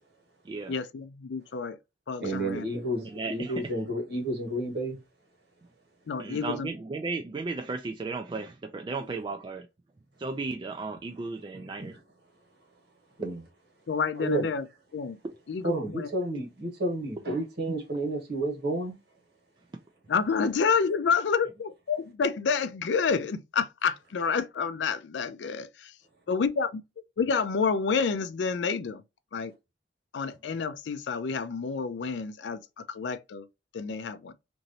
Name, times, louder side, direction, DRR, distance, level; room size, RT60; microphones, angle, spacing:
voice 1, 0.7-1.8 2.1-2.6 6.1-6.7 13.9-14.6 14.9-15.2 15.5-16.1 20.1-25.9 26.3-26.7 27.2-29.0 29.3-29.5 30.1-32.6 32.9-33.5 33.7-34.3, left 5 dB, 70° left, 0.4 m, -29 dB
voice 2, 2.2-5.0 11.5-12.0 13.2-13.4 14.2-14.5 15.6-18.9, right 1 dB, 60° right, 1.3 m, -31 dB
voice 3, 3.0-3.5 6.2-9.7 10.2-12.0 13.2-13.3 15.2-15.3, right 3 dB, 25° right, 0.3 m, -35 dB
3.0 x 2.6 x 2.6 m
head